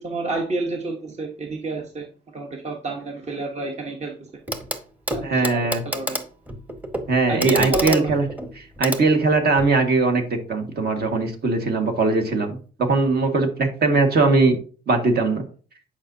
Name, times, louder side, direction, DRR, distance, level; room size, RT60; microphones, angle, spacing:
voice 1, 0.0-2.1 2.3-4.3 5.1-6.2 7.3-8.1, right 2 dB, 35° right, 2 dB, 1.1 m, -29 dB
Clock, 4.5-4.8 5.1-9.8 11.0-11.1, equal, 10° right, 1.0 m, -30 dB
voice 2, 5.2-5.8 7.1-8.2 8.5-14.6 14.9-15.4, right 3 dB, 55° right, 4 dB, 1.7 m, -20 dB
9.6 x 5.1 x 2.7 m, 0.39 s
cardioid pair, 90°, 20 cm